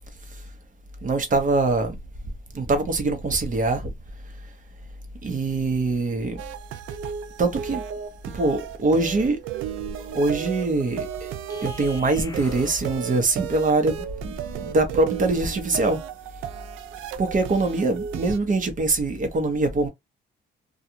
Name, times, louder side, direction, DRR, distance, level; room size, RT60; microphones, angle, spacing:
voice 1, 1.0-2.0 2.5-3.9 5.2-6.4 7.4-7.8 8.3-9.4 10.0-11.3 11.6-16.0 17.2-19.9, right 3 dB, 40° right, 1.0 m, -23 dB
sound 1, 6.4-18.4, right 9 dB, 90° right, 0.4 m, -34 dB
sound 2, 11.5-13.1, left 3 dB, 20° left, 0.5 m, -42 dB
2.4 x 2.4 x 2.8 m
cardioid pair, 90°, 20 cm